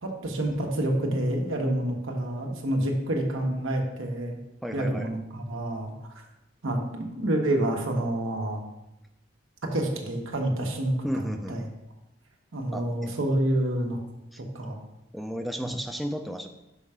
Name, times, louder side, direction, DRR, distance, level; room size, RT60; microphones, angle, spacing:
voice 1, 0.0-4.4 4.7-5.9 6.6-8.6 9.6-11.2 11.5-11.6 12.5-14.0 14.4-14.8 15.6-15.7, right 1 dB, 90° right, 2 dB, 1.2 m, -28 dB
voice 2, 4.6-5.1 11.0-11.7 12.7-12.9 14.3-14.4 15.1-16.5, equal, ahead, 5 dB, 0.3 m, -33 dB
5.6 x 5.4 x 4.8 m, 0.92 s
head